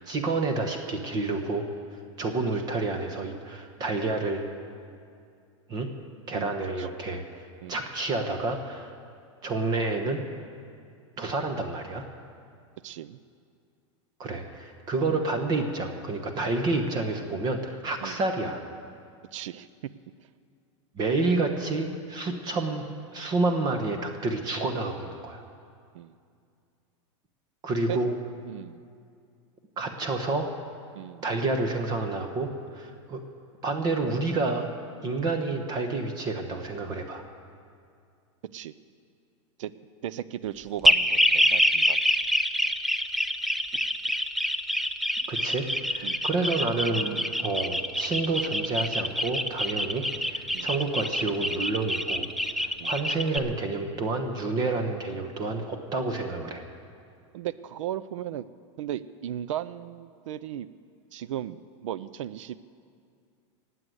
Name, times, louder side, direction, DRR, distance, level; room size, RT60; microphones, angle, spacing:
voice 1, 0.0-1.7 2.2-4.4 5.7-5.9 6.3-7.2 7.7-8.9 9.4-10.2 11.2-12.0 14.2-18.6 21.0-22.9 23.1-25.4 27.6-28.1 29.8-30.5 31.2-33.2 33.6-34.7 35.0-37.2 45.3-52.3 52.6-56.6, right 3 dB, 25° right, 5 dB, 1.1 m, -29 dB
voice 2, 6.3-6.9 7.6-7.8 12.8-13.2 15.1-15.2 18.0-18.2 19.3-19.7 22.3-22.5 25.9-26.1 27.9-28.0 28.5-28.8 31.0-31.2 38.5-38.7 39.6-39.7 40.0-42.0 46.0-46.2 47.1-47.3 50.5-50.7 52.8-52.9 57.3-58.5 58.8-60.7 61.1-62.6, right 11 dB, 80° right, 16 dB, 0.5 m, -36 dB
sound 1, 40.8-53.4, equal, ahead, 0.4 m, -26 dB
19.5 x 7.8 x 7.9 m, 2.4 s
supercardioid pair, 155°, 16 cm